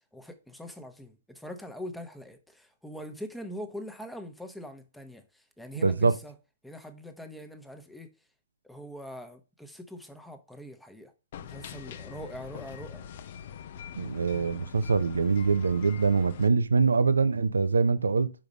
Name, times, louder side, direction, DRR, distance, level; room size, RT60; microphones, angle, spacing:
voice 1, 0.1-6.3 6.6-8.1 8.6-11.1 11.4-13.1, equal, ahead, 1.0 m, -43 dB
voice 2, 5.8-6.2 13.9-18.3, right 4 dB, 85° right, 0.5 m, -24 dB
sound 1, 11.3-16.5, left 8 dB, 55° left, 0.6 m, -43 dB
5.2 x 4.8 x 5.2 m
hypercardioid pair, 125°, 0 cm